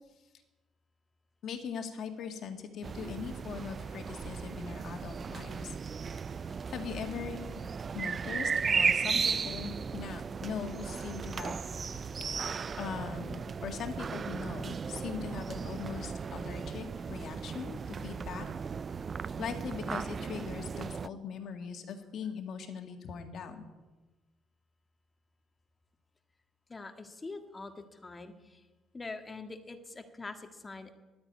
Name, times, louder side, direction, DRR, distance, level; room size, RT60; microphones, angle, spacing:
voice 1, 1.4-5.8 6.5-7.4 7.9-12.1 12.8-18.5 19.4-23.7, left 6 dB, 60° left, 6 dB, 2.0 m, -40 dB
sound 1, 2.8-21.1, right 6 dB, 40° right, 0.4 m, -35 dB
voice 2, 26.7-28.6 28.9-30.9, left 3 dB, 20° left, 6 dB, 1.7 m, -44 dB
12.0 x 9.6 x 9.4 m, 1.2 s
cardioid pair, 95°, 0 cm